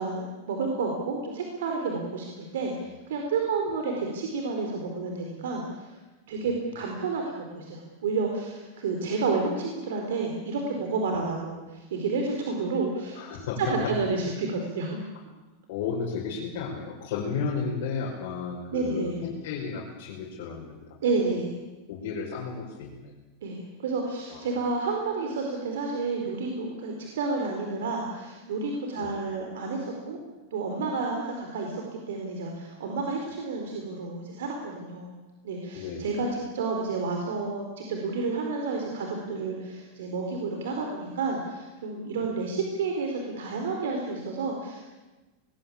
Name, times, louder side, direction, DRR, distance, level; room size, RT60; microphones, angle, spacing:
voice 1, 0.0-2.7 3.1-6.0 6.3-13.2 13.6-15.0 18.7-19.2 21.0-21.5 23.4-30.2 30.5-35.1 35.4-44.9, right 4 dB, 90° right, 2 dB, 4.4 m, -30 dB
voice 2, 13.1-13.9 14.2-14.4 15.7-20.7 21.9-23.2 24.3-24.5 29.0-29.1 35.7-36.1, left 5 dB, 55° left, -3 dB, 5.3 m, -33 dB
21.5 x 20.5 x 8.8 m, 1.1 s
supercardioid pair, 170°, 0 cm